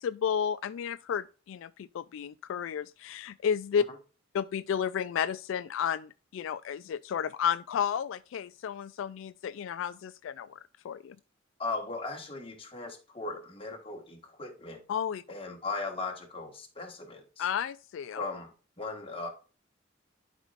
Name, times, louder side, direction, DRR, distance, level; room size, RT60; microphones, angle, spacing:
voice 1, 0.0-3.8 4.3-10.5 10.8-11.2 14.9-15.2 17.4-18.2, left 8 dB, 75° left, 0.3 m, -32 dB
voice 2, 11.6-14.8 15.3-17.5 18.1-19.3, left 3 dB, 25° left, 1.5 m, -38 dB
11.0 x 5.4 x 2.5 m
head